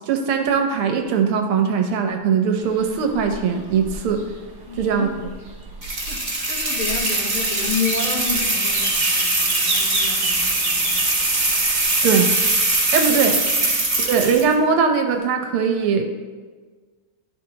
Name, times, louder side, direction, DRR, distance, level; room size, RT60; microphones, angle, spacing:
voice 1, 0.1-4.2 4.8-5.1 12.0-12.3 12.9-13.4 14.1-16.1, right 6 dB, 80° right, 5 dB, 1.7 m, -20 dB
sound 1, 2.6-14.4, right 2 dB, 40° right, 1.4 m, -34 dB
voice 2, 4.7-5.1 6.1-11.1 13.6-13.7, left 5 dB, 80° left, -2 dB, 2.3 m, -30 dB
sound 2, 5.8-14.5, right 2 dB, 25° right, 1.1 m, -21 dB
12.0 x 4.9 x 2.9 m, 1.4 s
omnidirectional pair, 2.4 m